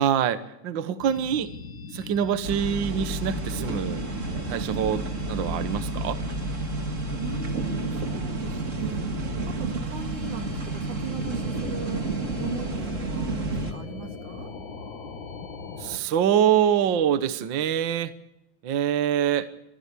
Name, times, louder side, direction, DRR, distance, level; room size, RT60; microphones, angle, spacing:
voice 1, 0.0-1.5 1.9-4.0 4.5-6.2 15.8-18.1 18.6-19.5, right 9 dB, 60° right, 12 dB, 1.3 m, -25 dB
sound 1, 1.0-16.0, left 5 dB, 75° left, 3.4 m, -40 dB
sound 2, 2.4-13.7, right 2 dB, 30° right, 1.6 m, -30 dB
voice 2, 7.2-9.2 9.5-14.5, right 4 dB, 75° right, 4 dB, 4.2 m, -38 dB
25.0 x 16.0 x 8.4 m, 0.85 s
omnidirectional pair, 3.5 m